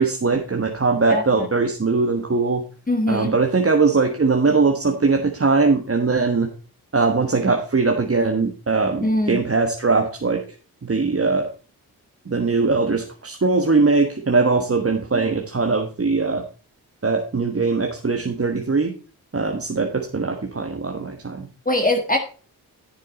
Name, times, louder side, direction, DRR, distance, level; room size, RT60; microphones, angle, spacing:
voice 1, 0.0-2.6 3.1-6.5 6.9-10.4 10.8-11.5 12.3-16.4 17.0-18.9 19.3-21.5, right 4 dB, 35° right, 3 dB, 1.4 m, -20 dB
voice 2, 1.1-1.5 2.9-3.4 9.0-9.4 15.1-15.2 21.6-22.2, left 1 dB, 20° left, 4 dB, 1.6 m, -22 dB
9.8 x 7.4 x 4.2 m, 0.37 s
cardioid pair, 50°, 40 cm